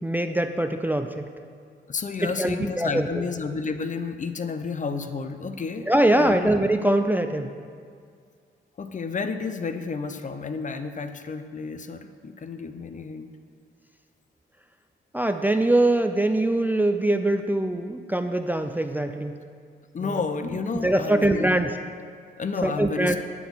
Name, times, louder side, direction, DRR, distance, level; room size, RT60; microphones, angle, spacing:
voice 1, 0.0-1.3 2.2-3.1 5.9-7.5 15.1-19.4 20.0-20.2 20.7-21.7 22.6-23.2, right 1 dB, 10° right, 7 dB, 0.4 m, -23 dB
voice 2, 1.9-6.5 8.8-13.3 19.9-21.5 22.4-23.2, left 4 dB, 40° left, 9 dB, 0.6 m, -31 dB
8.3 x 3.9 x 6.9 m, 2.1 s
cardioid pair, 65°, 20 cm